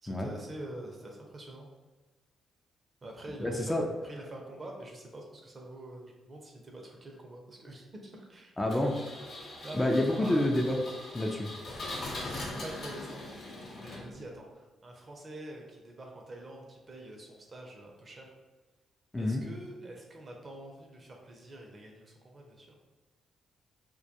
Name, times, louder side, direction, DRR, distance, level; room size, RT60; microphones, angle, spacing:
voice 1, 0.0-1.7 3.0-8.9 9.6-9.9 10.2-10.4 12.2-18.3 19.2-22.7, right 1 dB, 40° right, 1 dB, 0.6 m, -46 dB
voice 2, 3.4-3.9 8.6-8.9 9.7-10.8 11.1-11.5 19.1-19.4, left 1 dB, 20° left, 1 dB, 0.4 m, -28 dB
Engine, 8.7-14.4, left 2 dB, 60° left, 0.6 m, -41 dB
2.2 x 2.2 x 2.7 m, 1.3 s
supercardioid pair, 50°, 0 cm